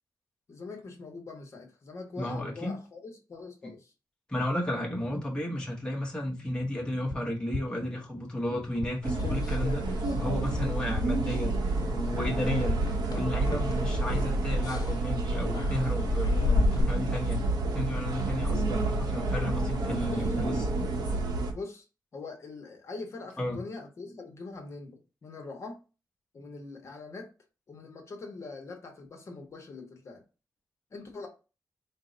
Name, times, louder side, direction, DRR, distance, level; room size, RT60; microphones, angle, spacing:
voice 1, 0.5-3.9 20.1-20.3 21.5-21.9 22.1-25.8 26.3-27.3 27.7-30.2 30.9-31.3, left 3 dB, 45° left, 0.9 m, -43 dB
voice 2, 2.2-2.8 3.6-3.7 4.3-11.6 11.9-12.8 13.1-17.4 17.7-20.6 23.4-23.6, left 1 dB, 10° left, 0.8 m, -33 dB
sound 1, 7.1-7.2 7.5-7.6 8.8-8.9 9.2-9.3 10.5-10.6 10.9-11.0 12.2-12.3 12.7-12.8 13.9-14.0, left 2 dB, 15° right, 1.2 m, -35 dB
sound 2, 8.8-10.2 10.5-10.8 11.1-11.3 11.7-16.8, left 4 dB, 65° left, 0.5 m, -33 dB
sound 3, 9.0-21.5, right 2 dB, 75° right, 0.8 m, -29 dB
4.4 x 2.0 x 3.7 m
wide cardioid pair, 180°, 7 cm